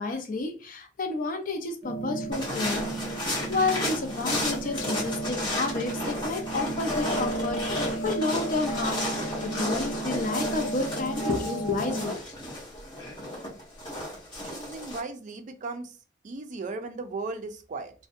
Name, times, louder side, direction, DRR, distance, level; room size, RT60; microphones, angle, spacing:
voice 1, 0.0-3.2 3.5-12.2, left 3 dB, 50° left, 0.5 m, -30 dB
sound 1, 1.8-12.1, right 2 dB, ahead, 1.0 m, -34 dB
sound 2, 2.3-15.0, left 1 dB, 25° left, 1.0 m, -33 dB
voice 2, 14.4-16.0 16.2-17.9, right 3 dB, 45° right, 0.4 m, -36 dB
2.6 x 2.1 x 2.5 m
head